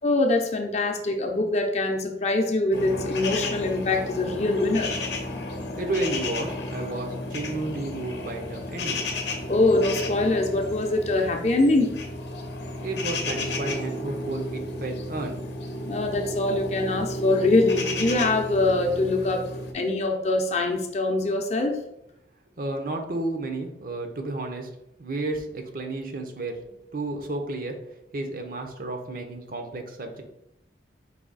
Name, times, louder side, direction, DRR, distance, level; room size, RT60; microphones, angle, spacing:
voice 1, 0.0-4.9 9.5-11.9 15.9-19.4 19.7-21.7, left 2 dB, 40° left, 3 dB, 0.6 m, -23 dB
sound 1, 2.7-19.7, left 1 dB, 75° left, 0.7 m, -33 dB
voice 2, 5.8-9.1 12.8-15.4 22.6-24.7 25.0-27.8 28.1-30.2, right 2 dB, 50° right, 4 dB, 0.6 m, -32 dB
4.8 x 2.7 x 4.0 m, 0.81 s
head